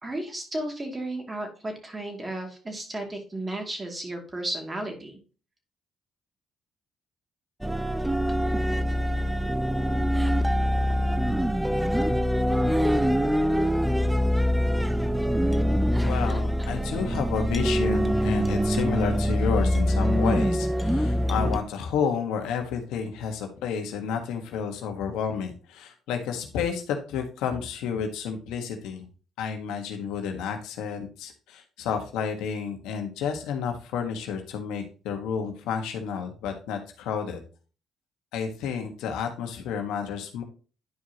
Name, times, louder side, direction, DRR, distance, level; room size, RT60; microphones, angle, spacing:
voice 1, 0.0-5.2, right 1 dB, 25° right, 2 dB, 2.5 m, -34 dB
sound 1, 7.6-21.6, equal, 5° right, 0.6 m, -24 dB
voice 2, 12.4-12.8 16.0-29.1 29.4-37.4 38.3-40.4, left 6 dB, 85° left, 4 dB, 1.4 m, -31 dB
11.0 x 4.8 x 2.9 m, 0.37 s
cardioid pair, 75°, 0 cm